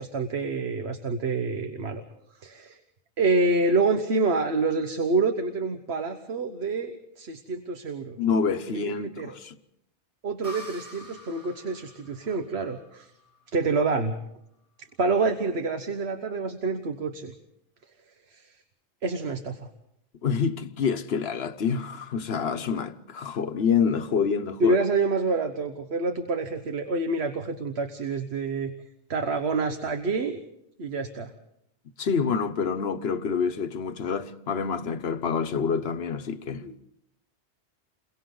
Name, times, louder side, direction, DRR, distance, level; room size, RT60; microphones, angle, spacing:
voice 1, 0.0-2.0 2.4-2.8 3.2-8.2 8.8-9.3 10.2-13.1 13.5-14.2 14.8-17.3 18.3-18.5 19.0-19.7 24.6-28.7 29.1-30.4 30.8-31.3 36.6-36.8, right 3 dB, 65° right, 1.4 m, -27 dB
voice 2, 8.2-9.5 20.2-24.8 32.0-36.6, left 6 dB, 65° left, 1.2 m, -27 dB
sound 1, 10.4-14.0, left 1 dB, 30° right, 2.7 m, -46 dB
29.5 x 22.5 x 3.9 m
omnidirectional pair, 1.2 m